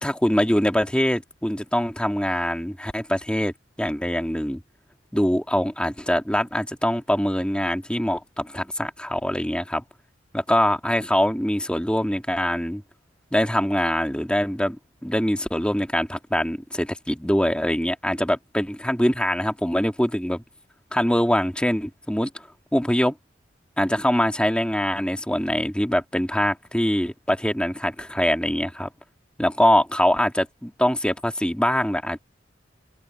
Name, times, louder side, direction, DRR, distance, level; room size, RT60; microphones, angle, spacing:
voice 1, 0.0-4.6 5.1-9.8 10.3-12.8 13.3-20.4 20.9-23.2 23.8-28.9 29.4-32.2, equal, 5° left, 2.2 m, -23 dB
head